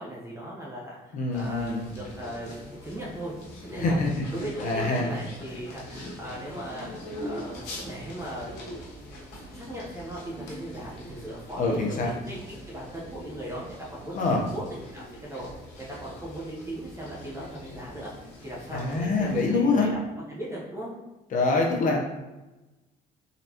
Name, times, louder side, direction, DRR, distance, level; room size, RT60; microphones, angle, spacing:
voice 1, 0.0-3.3 3.6-4.0 4.3-6.9 7.2-8.7 9.5-13.7 13.9-14.2 14.5-15.5 15.8-20.0 20.3-20.9, right 1 dB, 15° right, -6 dB, 0.9 m, -38 dB
voice 2, 1.1-1.8 3.8-4.1 4.6-5.1 11.6-12.1 14.1-14.4 18.7-19.9 21.3-22.0, left 3 dB, 50° left, -1 dB, 0.9 m, -25 dB
sound 1, 1.3-19.5, left 1 dB, 90° left, 1.1 m, -43 dB
4.0 x 3.2 x 2.9 m, 1.1 s
cardioid pair, 110°, 17 cm